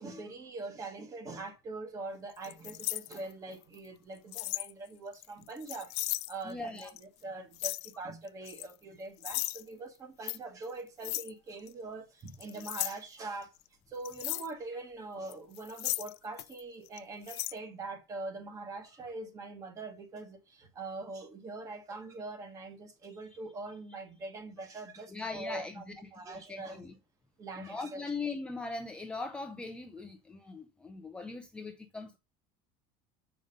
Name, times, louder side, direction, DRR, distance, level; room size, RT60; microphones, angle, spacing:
voice 1, 0.0-13.5 13.9-26.8 27.4-28.0, right 3 dB, 25° right, 1.3 m, -43 dB
sound 1, 2.4-3.6 4.3-4.7 5.1-6.3 6.8-7.0 7.5-7.9 8.4-8.7 9.2-9.6 10.3-10.4 11.0-11.3 11.7-11.8 12.3-12.9 14.0-14.5 15.3-16.6 16.9-17.0 17.3-17.5, left 21 dB, 80° left, 0.4 m, -36 dB
voice 2, 6.4-6.9 23.3-23.4 25.1-25.9 26.2-26.9 27.6-32.2, left 3 dB, 5° left, 0.5 m, -40 dB
6.5 x 5.2 x 5.2 m
cardioid pair, 160°, 14 cm